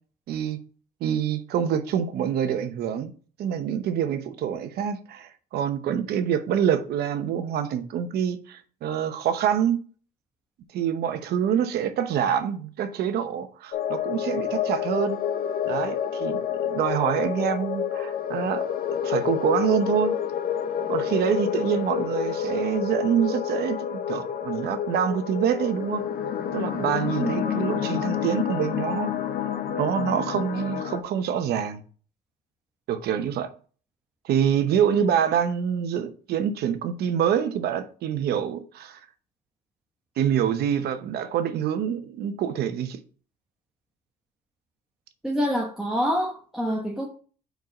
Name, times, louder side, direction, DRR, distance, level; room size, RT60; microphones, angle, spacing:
voice 1, 0.3-0.6 1.0-3.1 3.4-9.8 10.7-15.2 15.6-18.7 19.0-20.2 20.9-26.0 26.5-29.1 29.8-31.8 32.9-33.5 34.2-39.0 40.2-43.0, right 8 dB, 70° right, 0.9 m, -26 dB
sound 1, 13.7-31.0, left 9 dB, 60° left, 0.8 m, -29 dB
voice 2, 27.2-27.5 45.2-47.1, equal, ahead, 1.1 m, -26 dB
4.6 x 4.6 x 5.3 m
cardioid pair, 110°, 17 cm